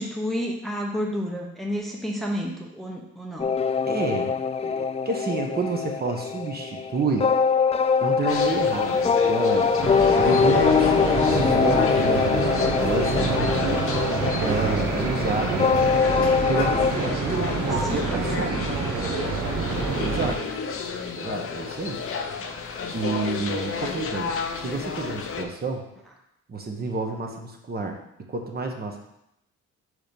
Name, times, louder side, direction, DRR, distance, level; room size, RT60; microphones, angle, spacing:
voice 1, 0.0-3.5 17.6-18.2 22.4-23.0, equal, ahead, -1 dB, 0.9 m, -31 dB
sound 1, 3.4-16.9, left 6 dB, 20° left, 0.4 m, -23 dB
voice 2, 3.9-4.3 4.6-7.3 8.0-13.8 14.4-15.7 16.5-18.7 20.0-20.5 21.1-22.0 22.4-22.5 22.9-25.9 26.5-28.0 28.3-29.0, right 3 dB, 30° right, 2 dB, 1.1 m, -29 dB
sound 2, 8.3-25.4, left 5 dB, 45° left, 0.8 m, -32 dB
sound 3, 9.8-20.3, right 4 dB, 70° right, 1.3 m, -27 dB
4.9 x 4.6 x 5.2 m, 0.80 s
cardioid pair, 90°, 30 cm